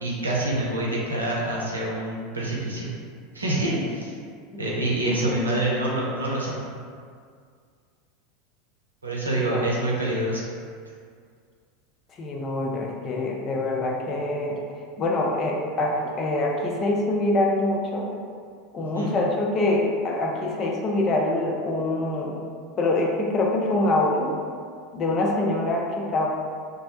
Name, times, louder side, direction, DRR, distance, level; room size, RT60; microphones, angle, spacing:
voice 1, 0.0-2.9 3.3-4.1 4.6-6.5 9.0-10.4 18.9-19.1, right 1 dB, 80° right, -5 dB, 0.5 m, -26 dB
voice 2, 5.0-5.4 9.3-9.7 12.2-14.6 15.0-18.1 18.7-22.4 22.8-24.3 24.9-26.3, left 2 dB, 35° left, -1 dB, 0.4 m, -25 dB
2.3 x 2.0 x 2.8 m, 2.1 s
figure-of-eight pair, 80°, 0 cm